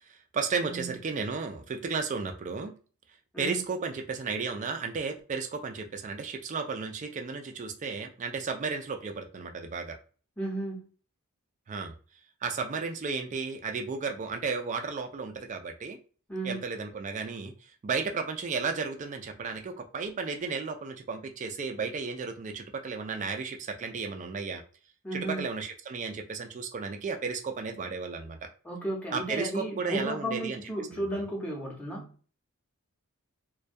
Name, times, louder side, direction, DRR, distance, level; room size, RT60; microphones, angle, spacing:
voice 1, 0.0-2.7 3.4-10.0 11.7-11.9 12.4-16.0 16.4-24.6 25.1-28.4 29.1-30.6 30.9-31.0, right 4 dB, 35° right, 5 dB, 0.3 m, -34 dB
voice 2, 0.6-0.9 3.3-3.6 10.4-10.9 16.3-16.6 25.0-25.5 28.6-32.1, right 1 dB, 5° left, -3 dB, 0.7 m, -34 dB
2.2 x 2.2 x 2.5 m, 0.39 s
head